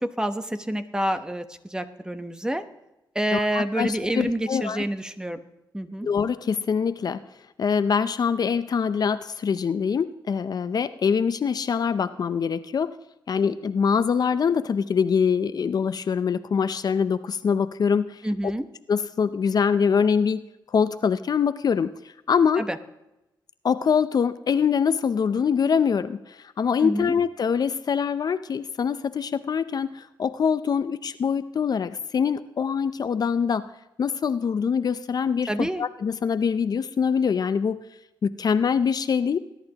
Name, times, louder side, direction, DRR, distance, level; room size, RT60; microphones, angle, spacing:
voice 1, 0.0-2.6 3.1-5.4 5.7-6.1 18.2-18.7 22.6-22.8 26.8-27.1 35.5-35.8, right 1 dB, 10° right, 9 dB, 0.9 m, -28 dB
voice 2, 3.3-4.8 6.0-7.2 7.6-12.9 13.3-18.5 18.9-22.7 23.6-33.7 34.0-37.8 38.2-39.4, left 6 dB, 55° left, 12 dB, 0.5 m, -24 dB
19.5 x 11.0 x 2.9 m, 0.93 s
cardioid pair, 85°, 8 cm